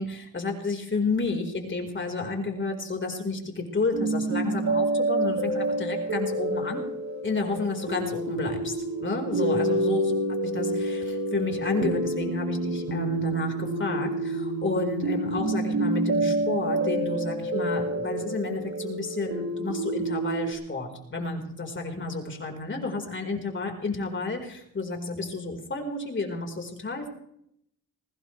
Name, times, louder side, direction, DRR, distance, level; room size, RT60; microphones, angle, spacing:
voice 1, 0.0-6.8 7.2-10.1 10.5-27.1, left 3 dB, 35° left, 2 dB, 4.6 m, -31 dB
sound 1, 3.9-20.5, right 2 dB, 60° right, 6.0 m, -28 dB
21.0 x 19.0 x 3.4 m, 0.72 s
cardioid pair, 95°, 33 cm